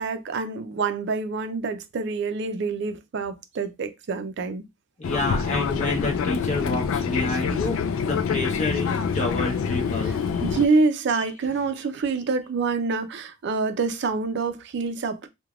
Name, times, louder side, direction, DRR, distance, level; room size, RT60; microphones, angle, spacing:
voice 1, 0.0-4.6 10.0-15.3, right 4 dB, 55° right, 0.4 m, -26 dB
Fixed-wing aircraft airplane, 5.0-10.7, left 6 dB, 75° left, 0.3 m, -26 dB
voice 2, 5.0-10.4 11.2-11.3, left 2 dB, 35° left, 0.8 m, -29 dB
3.2 x 2.1 x 2.3 m
head